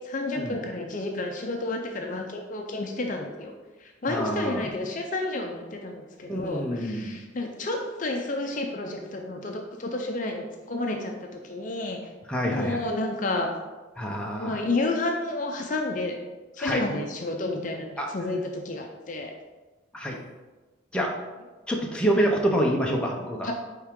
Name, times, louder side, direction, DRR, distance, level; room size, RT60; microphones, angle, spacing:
voice 1, 0.0-3.5 3.8-12.0 12.4-13.5 14.4-16.2 16.5-19.3 23.4-23.5, left 2 dB, 40° left, 2 dB, 0.5 m, -31 dB
voice 2, 4.1-4.7 6.3-7.2 12.3-12.8 14.0-14.6 16.6-16.8 18.0-18.1 19.9-20.2 20.9-21.1 21.7-23.5, equal, 5° left, -1 dB, 0.7 m, -27 dB
9.2 x 3.6 x 3.7 m, 1.2 s
head